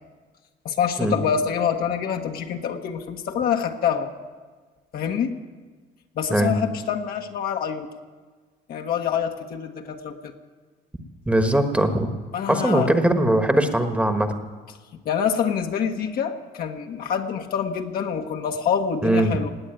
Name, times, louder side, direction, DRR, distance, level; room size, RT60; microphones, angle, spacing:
voice 1, 0.6-4.1 4.9-5.4 6.1-7.9 8.7-10.3 12.3-13.0 15.0-19.5, left 7 dB, 60° left, 4 dB, 1.4 m, -26 dB
voice 2, 11.3-12.1 12.5-14.3 19.0-19.3, right 1 dB, 10° right, 6 dB, 1.3 m, -20 dB
18.5 x 8.1 x 9.1 m, 1.4 s
cardioid pair, 110°, 17 cm